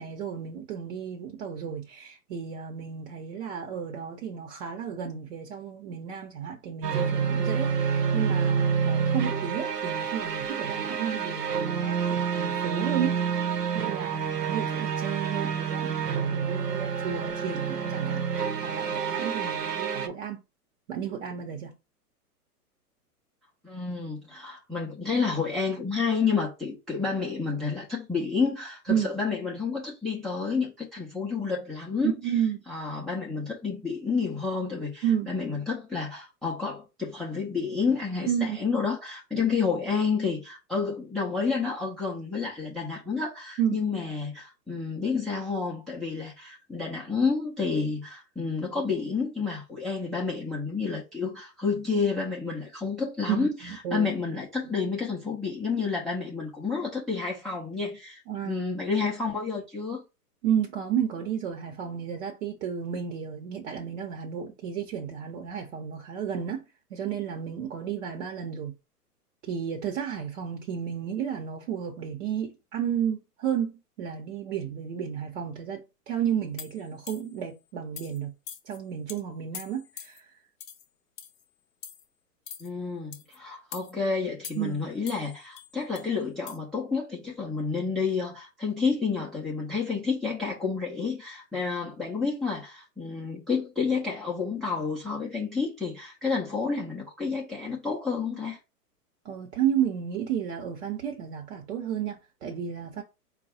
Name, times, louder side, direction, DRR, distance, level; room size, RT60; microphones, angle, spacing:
voice 1, 0.0-18.3 18.6-20.4 20.9-21.8 28.9-29.2 32.0-32.6 35.0-35.3 38.3-38.6 39.3-39.4 43.6-43.8 53.3-54.1 58.3-58.6 60.4-66.6 66.9-68.7 69.4-78.3 78.7-80.3 84.5-84.9 99.2-103.0, right 8 dB, 50° right, 1.0 m, -32 dB
sound 1, 6.8-20.1, right 6 dB, 85° right, 1.0 m, -28 dB
voice 2, 23.6-32.1 32.7-60.0 82.6-98.6, left 5 dB, ahead, 0.5 m, -30 dB
sound 2, 76.6-77.4 78.0-78.2 78.5-78.8 79.1-79.2 79.5-80.2 80.6-80.8 81.2-81.4 81.8-82.0 82.5-82.7 83.1-83.4 83.7-83.9 84.4-84.8 85.1-86.1 86.5-86.6, left 7 dB, 25° left, 0.8 m, -43 dB
4.6 x 2.3 x 4.2 m
hypercardioid pair, 115°, 47 cm